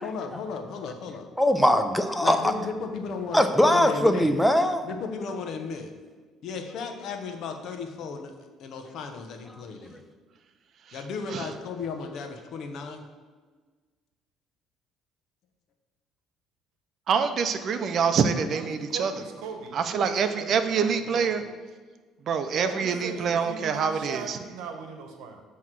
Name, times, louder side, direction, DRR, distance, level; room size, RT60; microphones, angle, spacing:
voice 1, 0.0-1.2 2.2-4.3 4.8-5.9 6.4-8.3 8.6-10.0 10.9-13.0, left 5 dB, 65° left, 5 dB, 0.8 m, -35 dB
voice 2, 1.4-2.5 3.3-4.8, left 1 dB, 5° left, 7 dB, 0.6 m, -21 dB
voice 3, 2.5-3.0 18.5-21.4 22.5-25.4, right 5 dB, 85° right, 5 dB, 1.0 m, -39 dB
voice 4, 17.1-19.1 19.7-21.4 22.3-24.4, right 6 dB, 55° right, 9 dB, 0.6 m, -25 dB
7.9 x 3.1 x 6.0 m, 1.4 s
cardioid pair, 105°, 0 cm